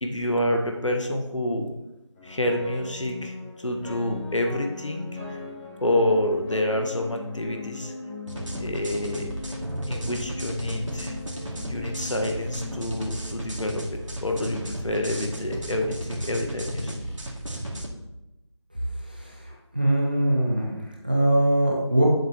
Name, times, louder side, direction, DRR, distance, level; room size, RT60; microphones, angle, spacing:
voice 1, 0.0-1.7 2.2-5.0 5.3-5.4 5.8-7.9 8.6-9.3 9.8-11.2 11.7-17.0, left 1 dB, 80° left, 2 dB, 1.4 m, -28 dB
sound 1, 2.1-14.4, left 3 dB, 15° left, 2.5 m, -40 dB
sound 2, 8.3-17.9, right 1 dB, 90° right, 2.3 m, -34 dB
voice 2, 19.1-20.8 21.0-22.0, right 1 dB, 20° right, -1 dB, 0.6 m, -22 dB
10.5 x 7.5 x 3.0 m, 0.94 s
figure-of-eight pair, 170°, 16 cm